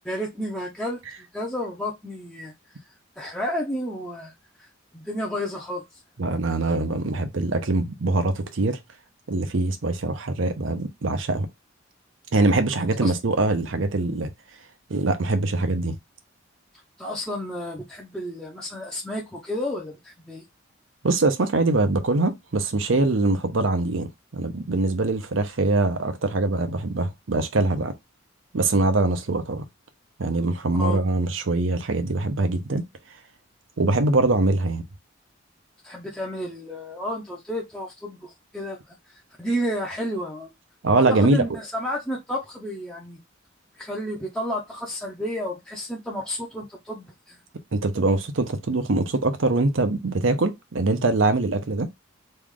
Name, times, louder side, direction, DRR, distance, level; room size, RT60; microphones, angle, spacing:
voice 1, 0.1-2.5 3.2-4.3 4.6-4.7 4.9-6.0 13.0-13.1 17.0-20.4 30.8-31.0 35.8-40.5 41.0-43.2 43.8-47.4, equal, 5° left, 0.6 m, -31 dB
voice 2, 6.2-8.8 9.3-11.5 12.3-14.3 14.9-16.0 21.0-27.9 28.5-29.6 30.2-32.8 33.8-34.8 40.8-41.4 47.7-51.9, right 2 dB, 70° right, 0.7 m, -23 dB
3.2 x 2.4 x 3.6 m
head